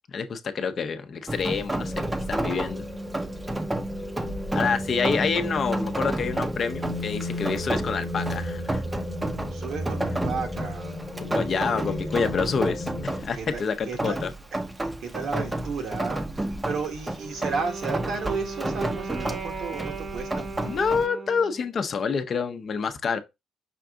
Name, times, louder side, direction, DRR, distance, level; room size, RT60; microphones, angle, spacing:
voice 1, 0.1-1.9 2.3-2.8 4.5-8.8 11.3-14.3 20.6-23.2, left 5 dB, 50° left, 0.6 m, -27 dB
Rain, 1.3-21.1, right 1 dB, 15° right, 0.6 m, -32 dB
sound 1, 1.8-13.2, left 1 dB, 5° left, 0.9 m, -33 dB
voice 2, 4.3-4.7 9.5-12.2 13.3-14.2 14.5-14.6 15.0-20.5, right 5 dB, 75° right, 1.3 m, -34 dB
Wind instrument woodwind instrument, 17.1-21.7, right 4 dB, 50° right, 1.0 m, -37 dB
5.9 x 2.5 x 3.6 m
cardioid pair, 90°, 0 cm